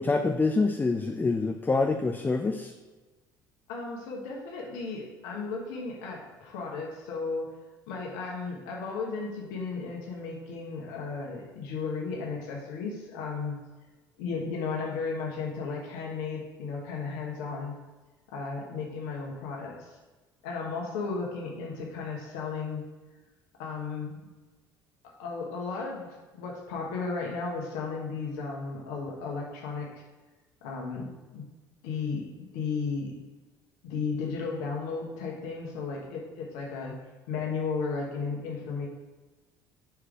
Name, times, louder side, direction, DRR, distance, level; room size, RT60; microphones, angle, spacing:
voice 1, 0.0-2.7, left 3 dB, 20° left, 4 dB, 0.5 m, -26 dB
voice 2, 3.7-7.5 7.9-13.6 14.2-17.7 18.3-20.0 20.4-22.8 23.6-24.2 25.0-30.0 30.6-31.4 31.8-33.2 33.8-36.9 37.3-38.9, left 4 dB, 70° left, -2 dB, 1.2 m, -34 dB
4.9 x 4.6 x 4.8 m, 1.2 s
hypercardioid pair, 60°, 11 cm